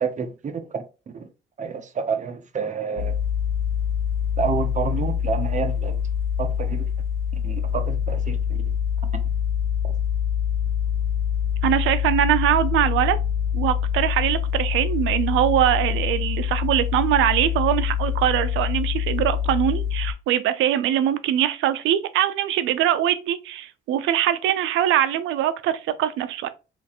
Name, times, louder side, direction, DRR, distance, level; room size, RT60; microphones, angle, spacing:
voice 1, 0.0-1.3 1.6-3.2 4.4-6.0 6.4-6.9 7.4-8.6, right 6 dB, 40° right, 0.6 m, -29 dB
sound 1, 3.0-20.1, left 8 dB, 75° left, 1.0 m, -25 dB
voice 2, 11.6-13.2 13.5-26.5, right 11 dB, 85° right, 0.4 m, -22 dB
3.0 x 2.5 x 2.8 m
cardioid pair, 90°, 20 cm